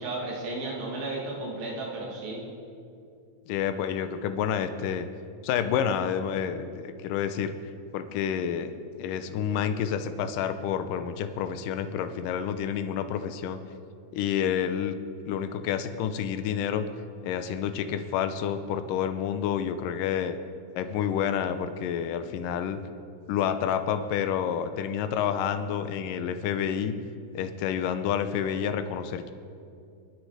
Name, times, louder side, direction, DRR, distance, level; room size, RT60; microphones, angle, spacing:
voice 1, 0.0-2.4, right 2 dB, 75° right, -2 dB, 4.3 m, -34 dB
voice 2, 3.5-5.1 5.4-7.5 7.9-8.7 9.0-13.6 14.1-15.0 15.3-16.9 17.2-20.3 20.8-22.8 23.3-26.9 27.3-29.3, left 8 dB, 75° left, 9 dB, 2.3 m, -29 dB
29.5 x 10.0 x 4.9 m, 2.5 s
omnidirectional pair, 4.2 m